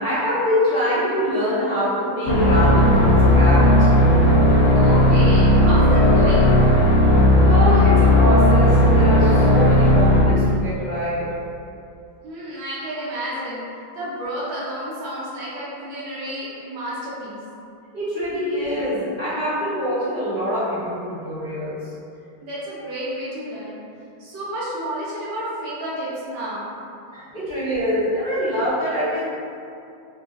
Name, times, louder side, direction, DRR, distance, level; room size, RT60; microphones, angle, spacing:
voice 1, 0.0-3.7 7.5-11.3 17.9-21.9 27.1-29.3, equal, 15° left, -15 dB, 1.1 m, -24 dB
sound 1, 2.3-10.2, left 1 dB, 75° left, 1.2 m, -15 dB
voice 2, 4.7-6.6 12.2-13.7 13.9-17.4 22.4-23.8 24.2-26.7, right 1 dB, 75° right, -8 dB, 1.4 m, -30 dB
3.9 x 2.3 x 2.4 m, 2.6 s
omnidirectional pair, 2.2 m